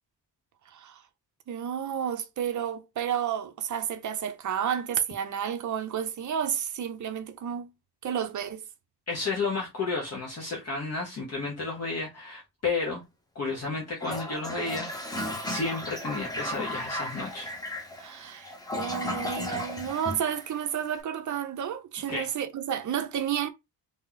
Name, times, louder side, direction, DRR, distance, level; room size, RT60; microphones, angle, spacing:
voice 1, 0.7-1.0 1.5-7.7 8.0-8.6 18.0-23.5, right 9 dB, 50° right, 0.6 m, -31 dB
voice 2, 9.1-13.0 13.3-17.5 22.1-22.3, left 3 dB, 40° left, 1.0 m, -32 dB
Toilet flush, 14.0-20.9, left 1 dB, 10° left, 0.7 m, -35 dB
2.9 x 2.7 x 3.8 m
wide cardioid pair, 160°, 40 cm